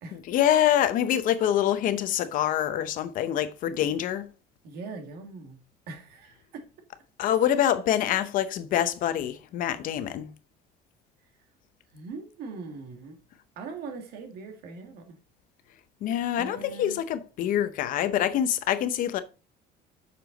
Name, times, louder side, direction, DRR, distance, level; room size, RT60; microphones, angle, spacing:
voice 1, 0.1-4.3 7.2-10.3 16.0-19.2, left 10 dB, 50° left, 0.7 m, -25 dB
voice 2, 4.6-5.6 5.9-6.6 11.9-13.2 13.6-15.2 16.4-17.1, right 4 dB, 60° right, 2.0 m, -41 dB
7.8 x 6.9 x 3.9 m
cardioid pair, 175°, 18 cm